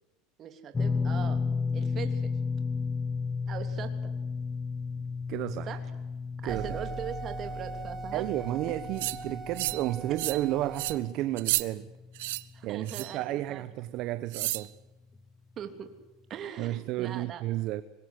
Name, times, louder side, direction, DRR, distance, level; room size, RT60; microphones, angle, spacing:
voice 1, 0.4-1.4 1.7-2.3 3.5-4.1 5.7-5.8 6.4-8.3 10.1-10.2 12.5-13.7 15.6-15.9 16.3-17.4, right 8 dB, 30° right, 3.1 m, -40 dB
sound 1, 0.7-13.0 13.2-13.5 15.2-15.3, left 4 dB, 15° left, 1.0 m, -34 dB
voice 2, 5.3-5.7 6.4-6.8 8.1-11.9 12.6-14.7 16.6-17.8, right 15 dB, 45° right, 0.9 m, -32 dB
sound 2, 6.5-11.0, right 4 dB, 15° right, 2.2 m, -41 dB
sound 3, 9.0-9.2 9.6-9.9 10.2-10.4 10.7-11.0 11.4-11.6 12.2-12.4 12.9-13.2 14.3-14.7, right 20 dB, 80° right, 1.2 m, -31 dB
25.0 x 21.5 x 8.2 m
supercardioid pair, 160°, 0 cm